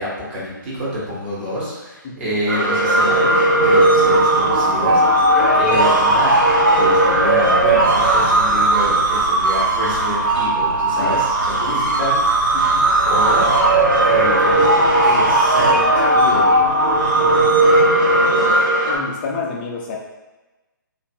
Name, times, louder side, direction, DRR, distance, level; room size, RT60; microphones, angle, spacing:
voice 1, 0.0-5.3 5.5-6.4 6.7-12.6 13.0-13.5 14.0-16.6, equal, 35° right, -7 dB, 1.1 m, -27 dB
sound 1, 2.5-19.0, right 1 dB, 75° right, 1.0 m, -16 dB
voice 2, 12.5-12.9 17.2-17.6 18.9-20.0, left 4 dB, 25° left, -2 dB, 0.4 m, -30 dB
2.5 x 2.5 x 2.4 m, 1.1 s
figure-of-eight pair, 130°, 11 cm